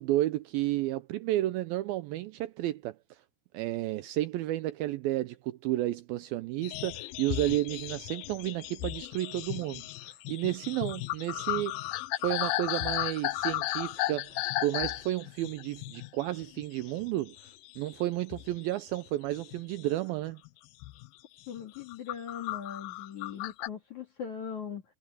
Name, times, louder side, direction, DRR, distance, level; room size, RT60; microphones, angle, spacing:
voice 1, 0.0-3.0 3.5-11.8 12.2-17.4 17.8-20.4, right 15 dB, 90° right, 2.2 m, -32 dB
sound 1, 6.6-17.1 17.3-18.0 18.3-19.8 20.3-20.5 20.8-21.1 21.6-23.7, left 17 dB, 85° left, 2.1 m, -35 dB
voice 2, 21.5-24.8, left 7 dB, 50° left, 3.5 m, -40 dB
omnidirectional pair, 4.9 m